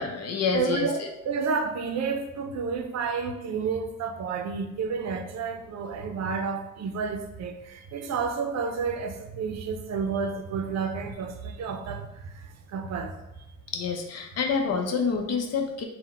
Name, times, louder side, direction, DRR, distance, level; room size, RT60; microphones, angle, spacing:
voice 1, 0.0-1.1 13.7-15.8, left 5 dB, 55° left, 0.7 m, -27 dB
voice 2, 0.5-12.1 12.7-13.1, right 5 dB, 60° right, 0.5 m, -30 dB
3.8 x 2.2 x 4.2 m
cardioid pair, 90°, 30 cm